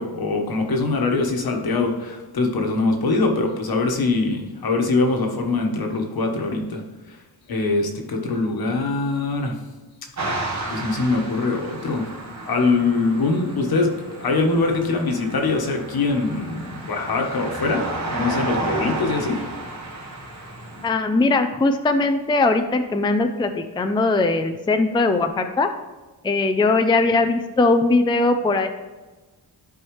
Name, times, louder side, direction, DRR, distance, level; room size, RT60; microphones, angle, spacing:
voice 1, 0.0-6.8 7.5-9.6 10.7-12.1 12.4-19.4, left 3 dB, 65° left, 2 dB, 1.4 m, -23 dB
sound 1, 10.2-20.9, right 2 dB, 45° right, 1.7 m, -32 dB
voice 2, 20.8-25.7 26.2-28.7, left 3 dB, 10° left, 7 dB, 0.4 m, -20 dB
11.5 x 4.7 x 3.2 m, 1.2 s
wide cardioid pair, 105°, 39 cm